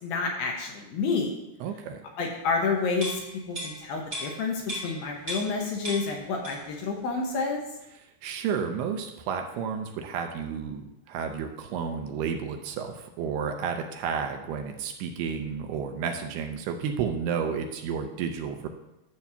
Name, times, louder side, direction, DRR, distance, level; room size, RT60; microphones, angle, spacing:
voice 1, 0.0-1.3 2.2-3.2 3.5-7.6, left 4 dB, 75° left, 1 dB, 2.4 m, -29 dB
voice 2, 1.6-2.0 8.2-18.7, right 6 dB, 80° right, 5 dB, 2.6 m, -31 dB
sound 1, 3.0-5.6 5.8-6.8 7.1-7.3, equal, 25° right, 1.7 m, -36 dB
11.5 x 7.1 x 2.8 m, 0.92 s
omnidirectional pair, 4.8 m